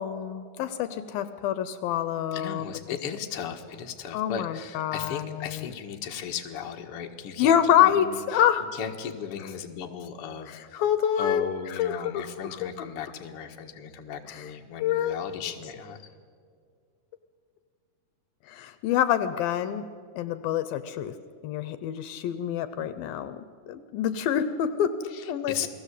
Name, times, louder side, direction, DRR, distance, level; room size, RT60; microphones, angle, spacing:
voice 1, 0.0-2.7 4.1-5.7 7.4-8.7 10.5-11.5 11.8-12.9 14.3-14.5 14.8-15.4 18.5-19.9 20.2-21.1 21.4-24.9 25.3-25.7, left 10 dB, 75° left, 12 dB, 2.5 m, -26 dB
voice 2, 2.3-7.5 7.8-8.4 8.8-10.8 11.2-16.0 25.1-25.7, left 8 dB, 50° left, 3 dB, 2.0 m, -36 dB
29.5 x 20.0 x 8.3 m, 2.1 s
omnidirectional pair, 4.4 m